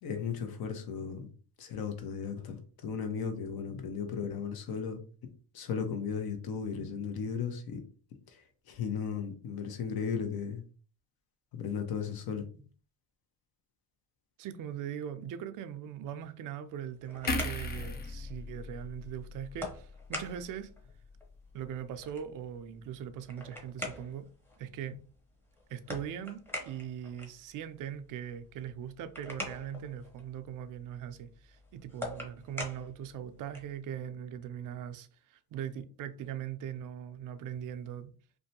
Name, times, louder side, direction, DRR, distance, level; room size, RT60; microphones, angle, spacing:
voice 1, 0.0-1.3 1.6-5.0 5.5-7.8 8.3-10.6 11.5-12.4, left 6 dB, 55° left, 0.8 m, -36 dB
voice 2, 14.4-20.7 21.5-24.3 24.6-25.0 25.7-38.1, right 9 dB, 45° right, 0.4 m, -40 dB
sound 1, 16.7-33.8, left 1 dB, 5° left, 0.8 m, -46 dB
sound 2, 17.3-20.6 21.0-21.2, left 2 dB, 25° left, 0.4 m, -38 dB
2.6 x 2.1 x 2.7 m
supercardioid pair, 80°, 44 cm